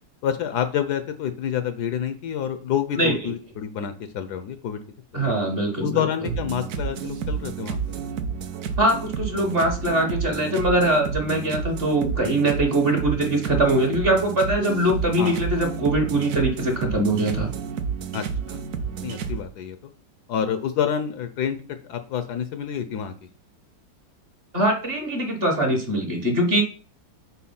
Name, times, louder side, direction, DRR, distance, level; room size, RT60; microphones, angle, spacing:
voice 1, 0.2-4.8 5.1-5.3 5.8-7.8 15.2-15.4 18.1-18.6 19.0-19.8 20.3-23.1, left 8 dB, 70° left, 9 dB, 1.0 m, -28 dB
voice 2, 5.1-6.0 8.8-17.5 24.5-26.6, right 1 dB, 40° right, 2 dB, 1.1 m, -22 dB
sound 1, 6.2-19.4, right 6 dB, 65° right, 0.9 m, -30 dB
4.5 x 4.3 x 5.5 m, 0.40 s
omnidirectional pair, 2.0 m